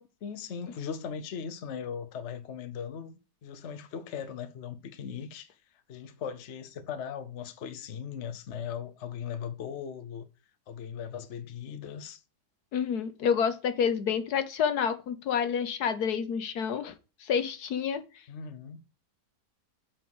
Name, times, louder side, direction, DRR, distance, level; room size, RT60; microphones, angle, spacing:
voice 1, 0.0-5.5 5.9-10.3 10.7-12.2 18.3-18.8, left 7 dB, 55° left, 0.9 m, -39 dB
voice 2, 12.7-16.9 17.2-18.0, left 7 dB, 70° left, 1.4 m, -28 dB
7.8 x 4.5 x 6.1 m
omnidirectional pair, 1.8 m